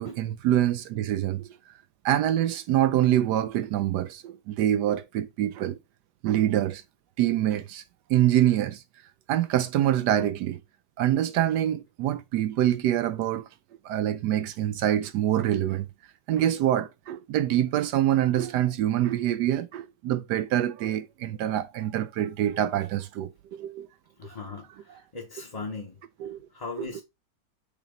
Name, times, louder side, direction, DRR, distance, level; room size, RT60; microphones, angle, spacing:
voice 1, 0.0-1.4 2.0-5.8 6.2-6.8 7.2-7.8 8.1-8.8 9.3-10.6 11.0-13.5 13.8-15.8 16.3-23.9 24.2-24.4 26.2-26.5 26.8-26.9, right 12 dB, 75° right, 1.0 m, -25 dB
voice 2, 24.2-26.0 26.5-27.0, left 4 dB, 25° left, 0.9 m, -38 dB
6.7 x 2.9 x 5.1 m
omnidirectional pair, 2.0 m